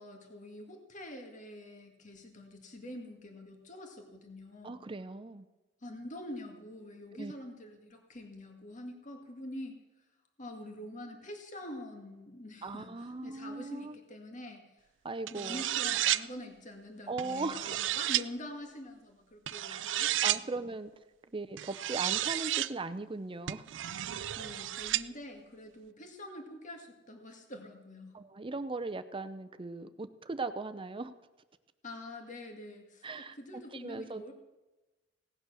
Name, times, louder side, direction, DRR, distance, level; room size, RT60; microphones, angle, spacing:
voice 1, 0.0-4.7 5.8-9.8 10.4-14.6 15.3-20.4 24.2-28.2 31.8-34.3, left 1 dB, 40° left, 3 dB, 2.0 m, -46 dB
voice 2, 4.6-5.5 7.1-7.3 12.6-14.0 15.0-15.6 17.1-17.8 19.7-20.0 20.2-20.9 21.3-23.6 28.1-31.1 33.0-34.3, right 3 dB, 30° right, 10 dB, 0.6 m, -39 dB
sound 1, 15.3-16.2 17.2-18.2 19.5-20.4 21.6-22.7 23.5-25.0, right 13 dB, 70° right, 0.4 m, -32 dB
17.5 x 9.3 x 6.3 m, 1.1 s
head